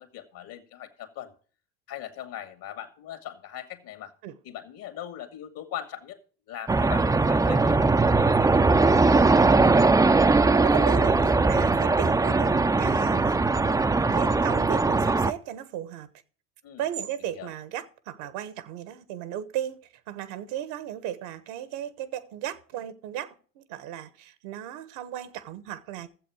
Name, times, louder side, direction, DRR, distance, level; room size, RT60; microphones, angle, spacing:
voice 1, 0.0-1.3 1.9-4.1 4.4-6.2 6.5-9.4 16.6-16.8 17.3-17.5, left 11 dB, 60° left, 2.1 m, -40 dB
sound 1, 6.7-15.3, right 3 dB, 10° right, 0.5 m, -20 dB
voice 2, 10.3-13.3 14.1-16.1 16.8-26.1, right 11 dB, 70° right, 1.2 m, -35 dB
14.0 x 7.7 x 4.8 m
hypercardioid pair, 75°, 39 cm